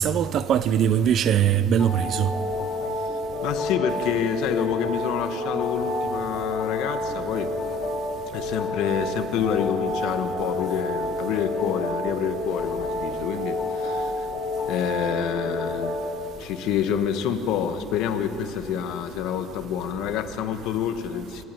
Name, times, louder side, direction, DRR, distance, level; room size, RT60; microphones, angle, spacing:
voice 1, 0.0-2.3, right 9 dB, 40° right, 0.6 m, -21 dB
sound 1, 1.8-16.1, left 2 dB, 25° left, 4.0 m, -29 dB
voice 2, 3.4-7.5 8.3-14.3 14.6-16.0 16.4-21.4, left 8 dB, 65° left, 1.3 m, -28 dB
25.5 x 12.5 x 9.1 m
cardioid pair, 165°, 0 cm